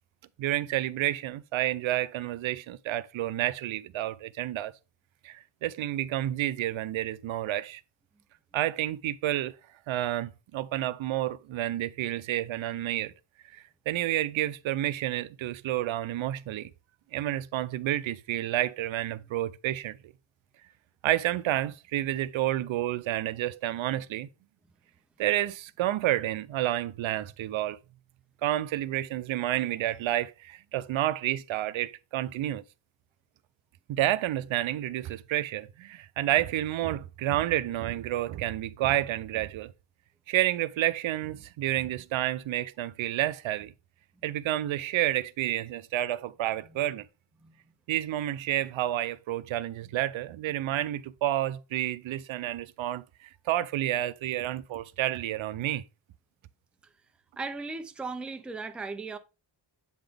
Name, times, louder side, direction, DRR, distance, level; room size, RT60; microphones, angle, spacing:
voice 1, 0.4-4.7 5.2-7.8 8.5-9.6 9.9-13.1 13.5-16.7 17.1-20.1 21.0-24.3 25.2-27.8 28.4-32.6 33.9-39.7 40.3-43.7 44.2-47.0 47.9-55.8, right 13 dB, 90° right, 0.5 m, -30 dB
voice 2, 57.4-59.2, right 3 dB, 5° right, 0.3 m, -37 dB
7.9 x 3.9 x 3.4 m
wide cardioid pair, 165°, 46 cm